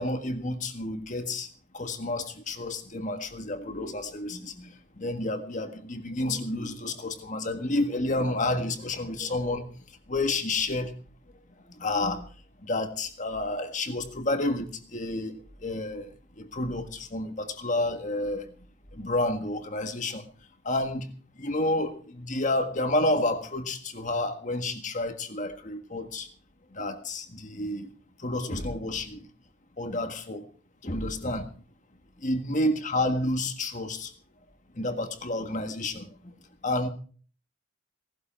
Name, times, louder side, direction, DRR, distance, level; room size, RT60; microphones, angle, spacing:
voice 1, 0.0-1.5 1.7-9.7 10.1-10.9 11.8-12.2 12.6-18.5 18.9-20.3 20.7-21.1 21.4-26.3 26.7-27.9 28.2-29.2 29.8-30.4 30.8-31.5 32.2-34.1 34.8-36.1 36.6-36.9, left 2 dB, 35° left, 7 dB, 1.7 m, -30 dB
18.5 x 12.0 x 4.4 m, 0.43 s
head